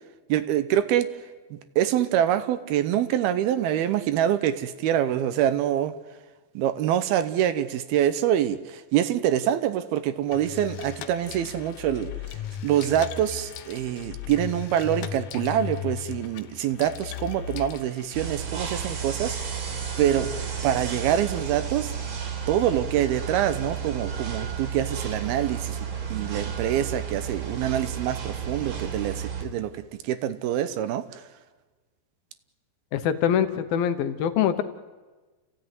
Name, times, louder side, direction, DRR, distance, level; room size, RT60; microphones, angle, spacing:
voice 1, 0.3-1.1 1.5-5.9 6.6-12.4 12.6-19.6 20.0-20.3 20.6-21.9 22.5-31.2, right 11 dB, 75° right, 2.6 m, -25 dB
sound 1, 10.3-18.3, left 10 dB, 90° left, 1.6 m, -37 dB
sound 2, 18.1-29.4, right 7 dB, 45° right, 3.1 m, -32 dB
voice 2, 32.9-34.6, left 9 dB, 70° left, 2.6 m, -24 dB
29.5 x 16.0 x 9.5 m
omnidirectional pair, 4.8 m